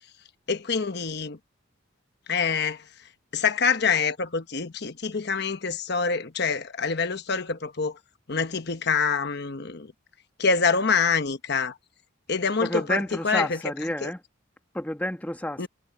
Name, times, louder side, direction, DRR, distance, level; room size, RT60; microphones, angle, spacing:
voice 1, 0.5-1.4 2.3-2.8 3.3-8.0 8.3-9.9 10.4-11.7 12.3-13.6 14.0-14.1 15.6-15.7, left 5 dB, 55° left, 1.1 m, -26 dB
voice 2, 12.6-14.2 14.7-15.7, left 1 dB, 10° left, 1.3 m, -30 dB
head